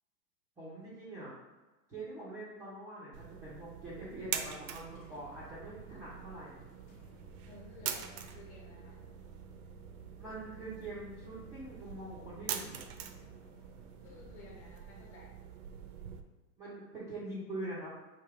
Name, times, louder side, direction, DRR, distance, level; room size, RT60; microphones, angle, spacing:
voice 1, 0.6-1.3 1.9-6.7 10.2-12.8 16.6-17.9, right 2 dB, 5° right, -11 dB, 0.4 m, -44 dB
sound 1, 3.1-16.2, right 8 dB, 65° right, 0.6 m, -45 dB
sound 2, 4.9-16.3, left 3 dB, 50° left, 0.9 m, -59 dB
voice 2, 7.5-9.0 14.0-15.3, left 2 dB, 30° left, -1 dB, 1.2 m, -54 dB
3.3 x 2.9 x 4.6 m, 1.1 s
hypercardioid pair, 145°, 48 cm